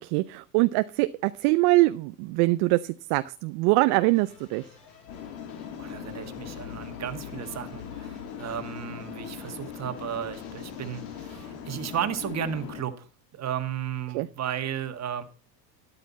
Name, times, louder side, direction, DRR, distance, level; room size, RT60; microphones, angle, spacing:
voice 1, 0.0-4.6 14.1-14.3, right 21 dB, 55° right, 12 dB, 0.7 m, -23 dB
sound 1, 4.0-11.8, left 5 dB, 45° left, 6.9 m, -52 dB
sound 2, 5.1-12.8, left 8 dB, 70° left, 2.5 m, -40 dB
voice 2, 5.8-13.1 13.3-15.2, right 9 dB, 30° right, 9 dB, 1.8 m, -34 dB
13.0 x 10.0 x 4.2 m, 0.38 s
hypercardioid pair, 100°, 49 cm